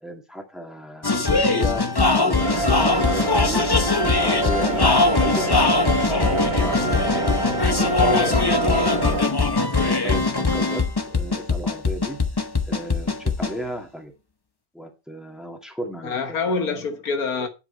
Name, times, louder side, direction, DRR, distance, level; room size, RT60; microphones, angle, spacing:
voice 1, 0.0-3.6 4.2-5.7 6.1-7.4 7.8-9.2 9.8-12.2 12.6-14.1 14.7-16.4, equal, ahead, 2.0 m, -34 dB
sound 1, 1.0-13.6, left 3 dB, 20° left, 0.7 m, -21 dB
sound 2, 2.4-9.2, right 2 dB, 30° right, 1.9 m, -25 dB
voice 2, 8.0-8.3 16.0-17.5, left 4 dB, 80° left, 1.8 m, -26 dB
8.6 x 7.6 x 4.3 m
omnidirectional pair, 1.5 m